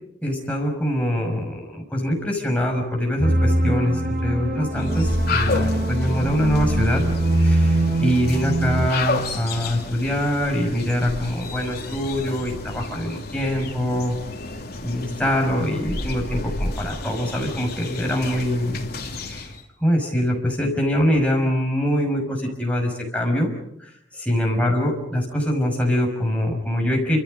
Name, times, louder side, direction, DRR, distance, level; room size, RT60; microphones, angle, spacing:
voice 1, 0.2-7.0 7.4-14.2 14.8-18.8 19.2-19.5 19.8-23.5 24.3-27.2, equal, 5° left, 0 dB, 5.9 m, -23 dB
sound 1, 3.2-8.9, right 1 dB, 50° right, 4.6 m, -22 dB
sound 2, 4.7-19.6, left 2 dB, 55° left, 2.9 m, -31 dB
29.0 x 27.0 x 5.3 m, 0.75 s
head